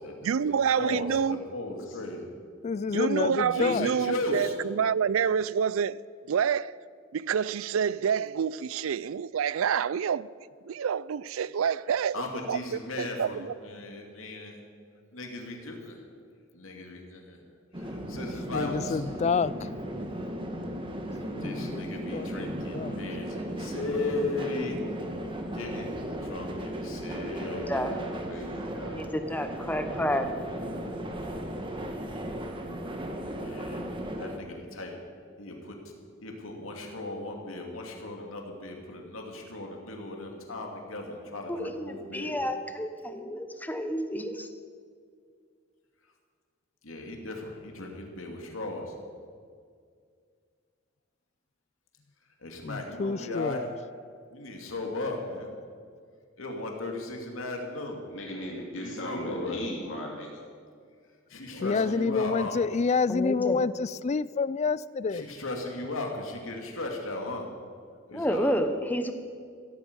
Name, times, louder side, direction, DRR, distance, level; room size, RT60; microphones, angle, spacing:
voice 1, 0.2-1.4 2.9-6.0 6.3-6.7 7.1-10.3 10.7-13.6, right 7 dB, 85° right, 21 dB, 0.4 m, -28 dB
voice 2, 0.8-2.3 3.5-4.5 12.1-14.6 15.1-16.0 16.5-17.4 17.8-19.0 21.4-24.8 25.5-25.9 26.2-27.9 33.4-33.8 34.2-34.9 35.4-35.7 36.2-42.4 46.8-48.9 52.4-53.6 54.3-55.5 56.4-58.0 58.8-59.6 61.3-62.5 65.1-67.5 68.1-68.6, left 2 dB, 80° left, 2 dB, 2.5 m, -36 dB
voice 3, 2.6-3.9 18.3-19.7 21.3-21.8 22.1-23.0 52.6-53.7 61.6-65.3, left 4 dB, 35° left, 18 dB, 0.3 m, -28 dB
sound 1, 17.7-34.4, right 1 dB, 25° right, 1.5 m, -36 dB
voice 4, 27.4-29.0 58.1-60.3 61.5-61.9, equal, 65° left, -1 dB, 2.5 m, -38 dB
voice 5, 28.9-30.3 41.5-44.5 63.1-63.6 68.1-69.1, equal, 10° left, 8 dB, 1.0 m, -30 dB
16.0 x 14.5 x 5.4 m, 2.1 s
head